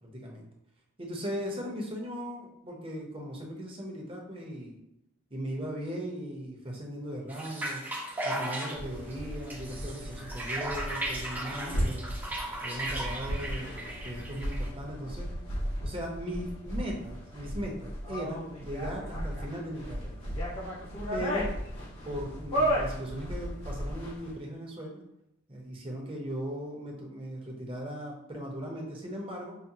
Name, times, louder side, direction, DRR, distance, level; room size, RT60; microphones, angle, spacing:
voice 1, 0.0-0.5 1.0-4.8 5.3-7.8 8.2-12.2 12.6-15.3 15.8-20.2 21.1-21.5 22.0-25.0 25.5-29.6, equal, 25° right, -1 dB, 0.7 m, -38 dB
sound 1, 7.3-14.7, right 1 dB, 10° right, 0.4 m, -36 dB
sound 2, 8.7-24.3, equal, 90° left, 1.3 m, -35 dB
5.7 x 2.1 x 2.7 m, 0.83 s
head